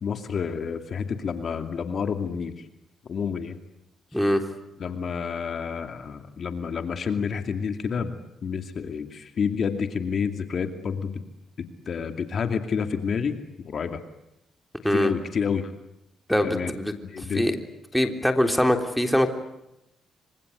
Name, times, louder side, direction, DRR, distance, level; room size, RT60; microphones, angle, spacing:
voice 1, 0.0-2.7 3.0-3.6 4.8-11.2 11.6-13.4 13.6-14.0 14.9-15.7 16.4-16.7 17.0-17.5, left 6 dB, 50° left, 7 dB, 2.5 m, -29 dB
voice 2, 4.1-4.4 14.8-15.1 16.3-17.6 17.9-19.3, equal, 5° left, 5 dB, 3.4 m, -23 dB
26.0 x 25.5 x 8.2 m, 0.86 s
cardioid pair, 90°, 0 cm